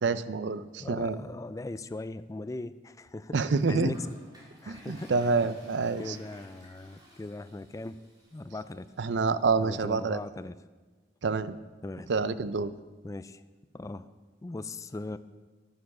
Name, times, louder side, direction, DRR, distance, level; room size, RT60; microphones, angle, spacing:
voice 1, 0.0-1.2 3.3-3.9 4.7-6.2 9.0-10.2 11.2-11.5 12.1-12.7, right 4 dB, 75° right, 15 dB, 0.5 m, -27 dB
voice 2, 0.8-4.1 4.6-5.1 5.4-5.5 6.0-8.0 8.3-8.9 9.6-10.5 11.8-12.1 13.0-13.4 13.7-14.1 14.4-15.2, left 2 dB, 20° left, 14 dB, 0.3 m, -39 dB
Toilet flush, 3.9-8.9, equal, 25° right, 3.4 m, -54 dB
11.0 x 9.5 x 6.1 m, 1.3 s
head